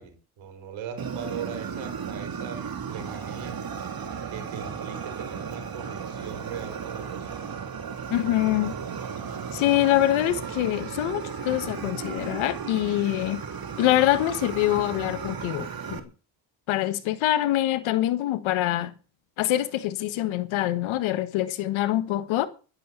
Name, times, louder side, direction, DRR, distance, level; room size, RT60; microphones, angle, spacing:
voice 1, 0.0-3.6 4.3-7.5, right 7 dB, 75° right, 4.9 m, -39 dB
Fire, 1.0-16.0, right 6 dB, 50° right, 2.9 m, -35 dB
voice 2, 8.1-8.8 9.5-13.4 13.8-16.1 16.7-18.9 19.4-22.5, left 14 dB, 80° left, 1.6 m, -25 dB
12.5 x 11.0 x 6.9 m
supercardioid pair, 55°, 47 cm